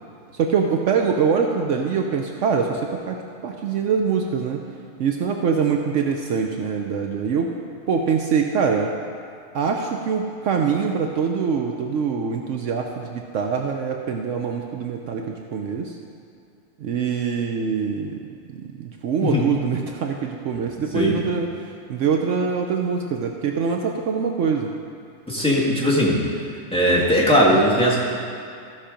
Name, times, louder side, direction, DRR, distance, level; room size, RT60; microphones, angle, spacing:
voice 1, 0.3-4.6 5.0-7.6 7.9-8.9 9.5-16.0 16.8-18.2 18.5-21.5 21.9-24.7, right 6 dB, 70° right, 2 dB, 1.0 m, -24 dB
voice 2, 25.3-26.2 26.7-28.0, equal, 5° left, -6 dB, 1.8 m, -18 dB
14.5 x 5.8 x 5.1 m, 2.4 s
omnidirectional pair, 1.4 m